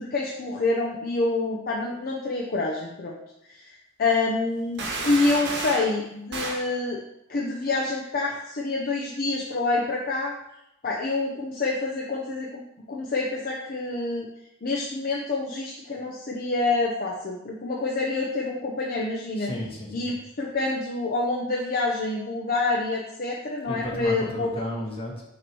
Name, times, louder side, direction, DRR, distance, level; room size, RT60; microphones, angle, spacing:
voice 1, 0.0-3.2 3.4-7.0 7.3-10.3 10.8-12.6 12.9-14.3 14.6-19.5 19.9-24.6, left 3 dB, 45° left, -2 dB, 0.7 m, -27 dB
sound 1, 4.8-5.9 6.3-6.7, right 3 dB, 55° right, 1.0 m, -31 dB
voice 2, 19.3-20.2 23.6-25.2, left 1 dB, 25° left, -2 dB, 1.4 m, -33 dB
6.4 x 3.0 x 5.3 m, 0.82 s
head